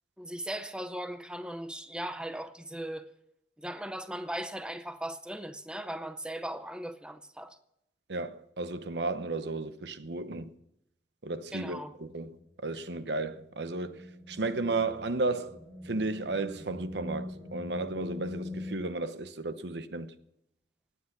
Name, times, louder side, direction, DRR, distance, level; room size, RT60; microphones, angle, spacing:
voice 1, 0.2-3.1 3.6-7.6 11.5-12.0, right 1 dB, 5° right, 0.6 m, -38 dB
voice 2, 8.1-10.5 11.2-12.4 12.6-15.6 15.9-20.1, right 3 dB, 80° right, 0.9 m, -34 dB
sound 1, 12.0-18.7, left 2 dB, 20° left, 5.4 m, -43 dB
17.5 x 9.4 x 6.0 m
head